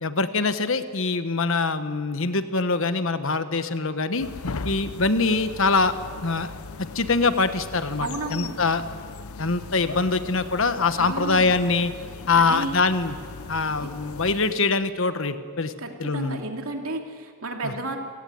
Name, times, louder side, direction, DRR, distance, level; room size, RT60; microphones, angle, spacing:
voice 1, 0.0-4.3 4.6-5.9 6.2-6.5 6.8-8.8 9.4-11.9 12.3-13.2 13.5-15.7 16.0-16.4 17.6-17.7, left 3 dB, 65° left, 10 dB, 1.4 m, -23 dB
sound 1, 4.2-14.5, left 4 dB, 90° left, 0.9 m, -38 dB
voice 2, 8.0-8.5 11.0-11.5 12.3-12.8 13.8-13.9 15.8-18.0, right 2 dB, 80° right, 3 dB, 2.8 m, -32 dB
29.5 x 17.5 x 9.4 m, 2.1 s
head